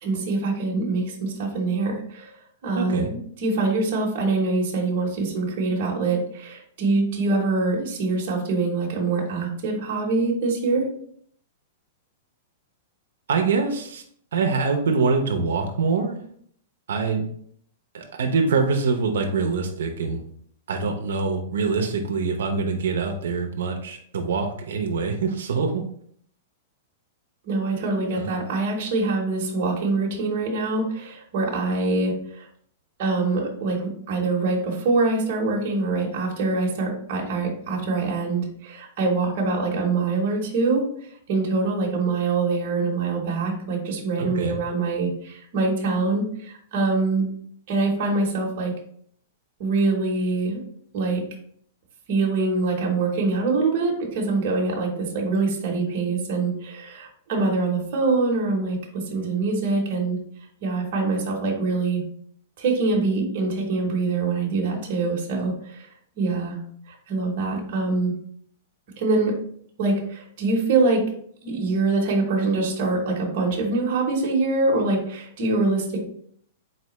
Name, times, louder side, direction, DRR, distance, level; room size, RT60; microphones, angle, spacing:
voice 1, 0.0-2.3 2.6-10.9 27.5-32.5 33.0-47.3 47.7-48.8 49.6-50.6 50.9-51.3 52.1-60.2 60.6-62.1 62.6-65.9 66.2-66.5 67.1-68.2 69.0-69.4 69.8-71.1 71.4-76.0, right 3 dB, 35° right, -2 dB, 0.9 m, -24 dB
voice 2, 2.8-3.1 13.3-14.0 14.3-16.2 16.9-17.3 17.9-20.2 20.7-25.8 28.1-28.3 44.2-44.6, right 4 dB, 80° right, 4 dB, 0.6 m, -24 dB
4.1 x 3.2 x 3.0 m, 0.63 s
supercardioid pair, 180°, 0 cm